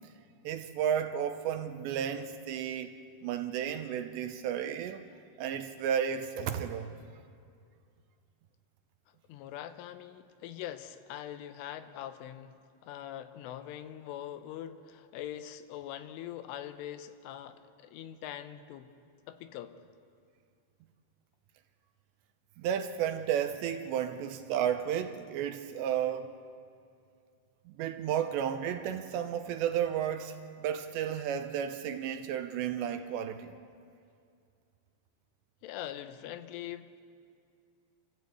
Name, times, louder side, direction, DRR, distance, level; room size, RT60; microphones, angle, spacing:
voice 1, 0.4-2.9 3.2-5.0 5.4-7.0 22.6-26.5 27.7-33.6, right 9 dB, 80° right, 2.8 m, -33 dB
voice 2, 9.3-12.6 12.8-18.9 19.3-19.7 35.6-37.0, left 11 dB, 90° left, 3.4 m, -43 dB
29.5 x 14.0 x 8.1 m
omnidirectional pair, 5.5 m